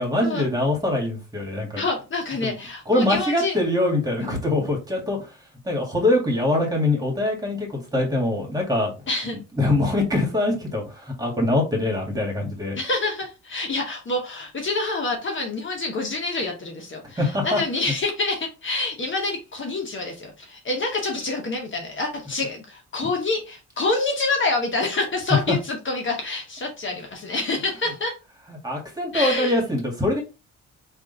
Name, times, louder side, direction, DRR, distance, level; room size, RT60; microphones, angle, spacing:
voice 1, 0.0-1.8 2.4-2.6 2.9-5.3 5.7-8.9 9.6-12.8 17.2-17.6 25.5-25.6 28.6-30.2, left 1 dB, 10° right, 1.9 m, -23 dB
voice 2, 1.8-3.6 4.2-4.4 9.1-9.4 12.8-28.1 29.1-29.6, left 3 dB, 40° left, 1.0 m, -27 dB
3.6 x 2.6 x 3.9 m
cardioid pair, 90°, 30 cm